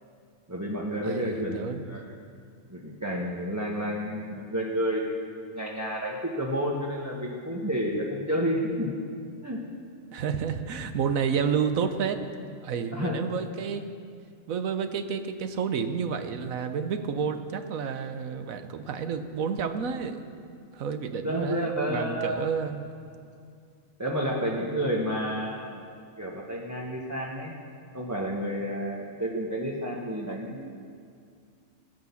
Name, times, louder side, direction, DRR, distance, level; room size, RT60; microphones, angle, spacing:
voice 1, 0.5-2.1 2.7-8.9 9.4-9.6 12.9-13.2 21.2-22.5 24.0-25.8 26.2-27.5 27.9-30.7, equal, 15° right, -4 dB, 1.3 m, -30 dB
voice 2, 1.0-2.0 10.1-13.9 14.5-20.2 20.7-22.9, right 6 dB, 80° right, 8 dB, 1.3 m, -30 dB
15.5 x 10.5 x 7.1 m, 2.3 s
omnidirectional pair, 1.4 m